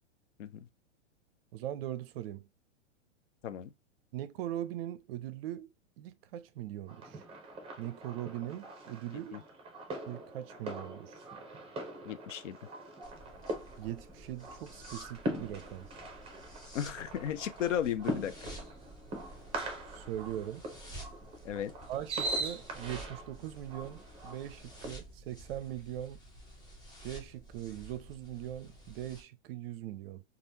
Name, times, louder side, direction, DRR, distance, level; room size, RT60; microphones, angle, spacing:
voice 1, 1.5-2.5 4.1-5.7 6.0-7.2 7.8-9.4 10.1-11.2 13.8-15.9 19.9-20.6 21.9-26.2 27.0-30.2, right 12 dB, 55° right, 0.5 m, -40 dB
sound 1, 6.9-24.9, right 1 dB, 15° right, 0.9 m, -42 dB
voice 2, 12.0-12.6 16.7-18.3 21.4-21.7, left 9 dB, 85° left, 0.6 m, -34 dB
sound 2, 13.0-29.2, right 1 dB, 10° left, 0.8 m, -51 dB
3.3 x 2.4 x 2.7 m
hypercardioid pair, 130°, 36 cm